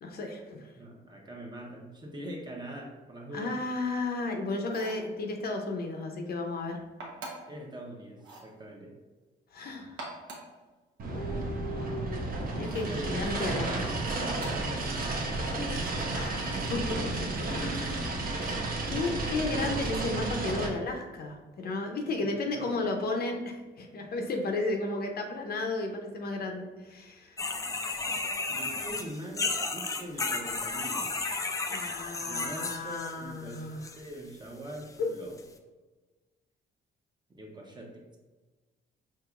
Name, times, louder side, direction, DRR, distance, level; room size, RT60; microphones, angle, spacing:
voice 1, 0.0-0.7 3.3-6.8 9.5-10.0 11.1-12.2 12.5-14.0 16.1-18.3 18.9-27.4 31.6-33.8 35.0-35.1, left 2 dB, 55° left, 3 dB, 0.6 m, -34 dB
voice 2, 0.7-3.6 7.5-9.0 12.9-15.8 22.2-22.8 28.5-31.4 32.2-35.4 37.3-38.2, right 1 dB, 25° right, 0 dB, 0.8 m, -43 dB
sound 1, 4.6-5.1 7.0-7.6 8.2-8.5 9.8-10.6 12.6-13.0 14.3-14.7 16.4-16.8, right 2 dB, 80° right, 0.9 m, -44 dB
sound 2, 11.0-20.7, right 2 dB, 50° right, 0.7 m, -32 dB
sound 3, 27.4-33.1 33.5-34.0 34.7-34.8 35.4-35.5, left 3 dB, 20° left, 0.3 m, -33 dB
4.7 x 2.9 x 2.4 m, 1.3 s
cardioid pair, 100°, 19 cm